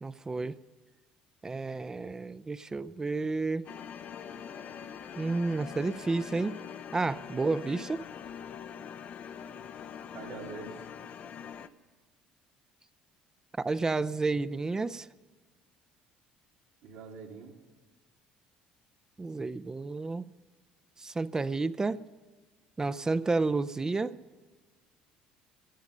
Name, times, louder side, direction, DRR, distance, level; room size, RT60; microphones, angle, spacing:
voice 1, 0.0-0.6 1.4-3.7 5.2-6.6 6.9-8.0 13.6-15.1 19.2-20.3 21.0-22.0 22.8-24.2, right 3 dB, 20° right, 15 dB, 0.6 m, -31 dB
sound 1, 3.6-11.7, left 7 dB, 55° left, 0.8 m, -43 dB
voice 2, 10.1-10.8 16.8-17.6, right 5 dB, 80° right, -2 dB, 2.9 m, -44 dB
18.0 x 13.0 x 5.4 m, 1.4 s
supercardioid pair, 80°, 3 cm